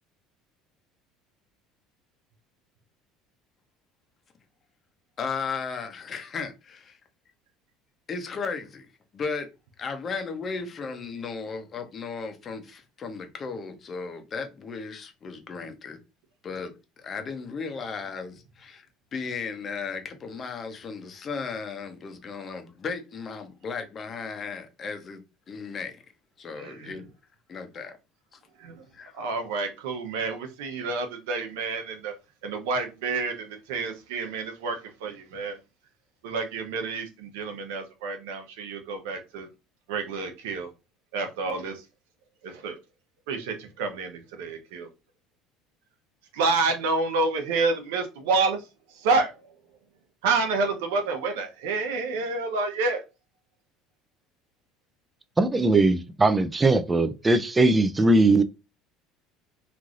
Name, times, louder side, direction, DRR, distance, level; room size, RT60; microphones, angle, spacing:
voice 1, 5.2-7.0 8.1-8.9 9.1-9.5 9.8-16.0 16.4-16.7 17.0-18.9 19.1-25.2 25.5-26.0 26.4-27.1 27.5-28.0 28.9-29.1, left 5 dB, 35° left, 0.7 m, -35 dB
voice 2, 26.6-26.9 28.6-28.8 29.1-32.1 32.4-35.6 36.2-39.5 39.9-40.7 41.1-41.8 42.4-42.8 43.3-44.9 46.3-48.6 48.9-49.3 50.2-53.0, right 3 dB, 90° right, 0.8 m, -28 dB
voice 3, 55.4-58.4, right 2 dB, 15° right, 0.4 m, -20 dB
3.1 x 2.6 x 2.5 m
supercardioid pair, 115°, 0 cm